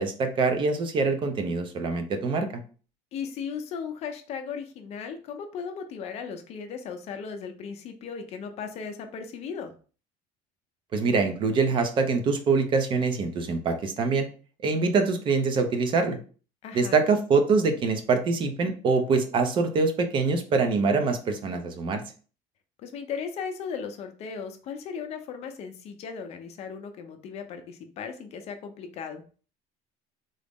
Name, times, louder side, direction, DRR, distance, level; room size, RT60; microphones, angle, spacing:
voice 1, 0.0-2.5 10.9-14.3 14.6-16.2 16.7-22.0, right 4 dB, 30° right, 6 dB, 0.5 m, -24 dB
voice 2, 3.1-9.7 16.6-17.0 22.8-29.2, left 6 dB, 40° left, 6 dB, 0.6 m, -37 dB
3.8 x 2.0 x 3.5 m, 0.39 s
cardioid pair, 165°, 16 cm